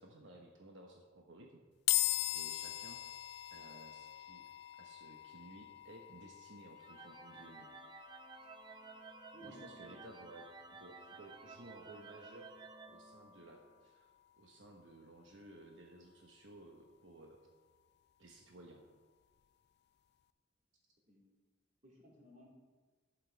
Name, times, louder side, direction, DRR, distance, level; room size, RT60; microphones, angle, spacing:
voice 1, 0.0-1.6 2.3-3.0 3.5-4.4 4.8-7.7 9.4-12.5 12.9-14.1 14.4-17.4 18.2-18.8, right 1 dB, 75° right, 1 dB, 1.1 m, -56 dB
sound 1, 1.9-15.2, left 17 dB, 60° left, 0.3 m, -42 dB
sound 2, 6.8-13.8, right 4 dB, 25° right, 0.6 m, -54 dB
voice 2, 9.3-10.0 21.1-21.2 21.8-22.5, equal, 40° right, -3 dB, 2.8 m, -57 dB
11.5 x 8.4 x 4.6 m, 1.4 s
head